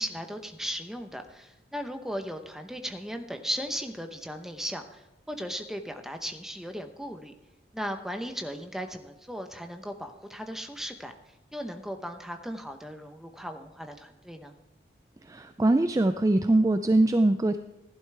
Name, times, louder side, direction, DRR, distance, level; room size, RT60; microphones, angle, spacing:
voice 1, 0.0-7.3 7.7-11.1 11.5-14.5, equal, ahead, 6 dB, 0.8 m, -37 dB
voice 2, 15.2-17.6, right 2 dB, 20° right, 9 dB, 0.3 m, -22 dB
15.0 x 11.5 x 3.4 m, 1.0 s
head